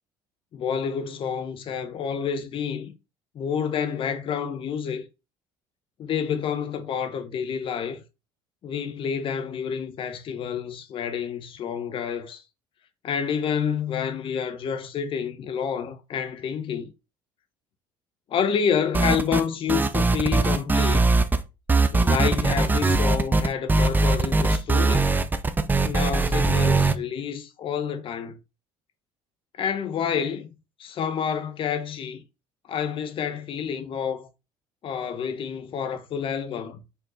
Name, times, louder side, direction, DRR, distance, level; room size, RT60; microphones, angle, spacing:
voice 1, 0.5-2.9 3.3-5.0 6.0-8.0 8.6-12.4 13.0-16.9 18.3-21.1 21.9-25.1 25.8-28.4 29.6-30.5 30.8-32.2 32.7-34.3 34.8-36.8, left 7 dB, 50° left, 1.2 m, -28 dB
sound 1, 18.9-19.4 19.7-21.4 21.7-26.9, right 3 dB, 15° right, 0.6 m, -21 dB
5.6 x 4.3 x 4.3 m
cardioid pair, 105°, 11 cm